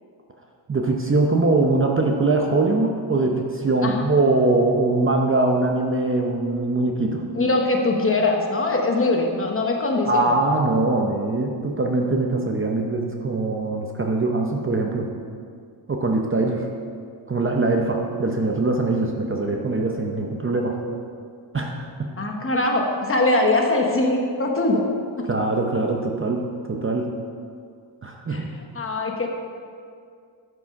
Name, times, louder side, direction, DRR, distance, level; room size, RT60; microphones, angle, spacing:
voice 1, 0.7-7.2 10.1-15.1 15.9-16.7 17.3-20.7 21.5-22.1 25.3-26.4 26.7-27.1 28.0-28.4, right 2 dB, 25° right, 1 dB, 0.7 m, -22 dB
voice 2, 7.3-10.3 22.2-24.8 28.3-29.3, left 2 dB, 25° left, 1 dB, 1.0 m, -22 dB
12.5 x 6.1 x 5.2 m, 2.2 s
wide cardioid pair, 170°, 48 cm